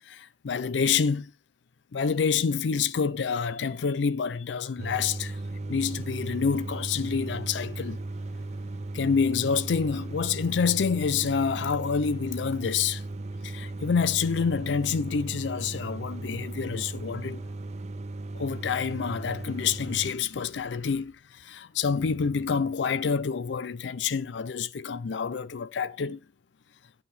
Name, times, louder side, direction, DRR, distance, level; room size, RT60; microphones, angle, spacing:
voice 1, 0.1-1.3 1.9-5.4 5.7-8.0 8.9-13.0 13.4-17.4 18.3-26.2, left 6 dB, 85° left, 0.5 m, -27 dB
sound 1, 4.8-20.1, right 2 dB, 40° right, 0.5 m, -36 dB
11.0 x 9.2 x 3.3 m
head